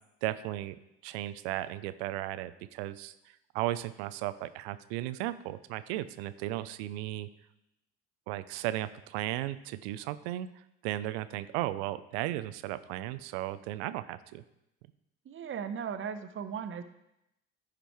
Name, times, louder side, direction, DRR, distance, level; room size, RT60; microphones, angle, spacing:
voice 1, 0.2-0.8 1.0-3.1 3.5-7.3 8.3-10.5 10.8-14.4, right 15 dB, 65° right, 13 dB, 0.6 m, -35 dB
voice 2, 15.2-16.8, right 7 dB, 35° right, 10 dB, 1.0 m, -37 dB
14.5 x 5.2 x 4.6 m, 0.85 s
figure-of-eight pair, 60°, 34 cm